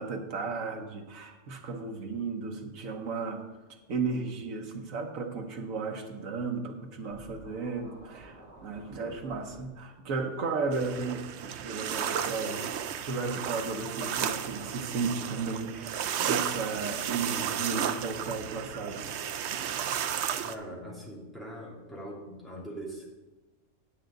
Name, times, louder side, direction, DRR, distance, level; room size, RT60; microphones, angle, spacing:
voice 1, 0.0-3.4 3.9-12.7 13.0-15.9 16.2-19.1, right 4 dB, 85° right, 3 dB, 1.4 m, -34 dB
Scratching (performance technique), 7.1-9.7, right 1 dB, 30° right, 2.2 m, -51 dB
sound 1, 10.7-20.6, right 8 dB, 65° right, 0.8 m, -33 dB
voice 2, 20.4-23.1, right 1 dB, ahead, -6 dB, 2.7 m, -42 dB
9.6 x 9.0 x 3.8 m, 1.1 s
omnidirectional pair, 1.4 m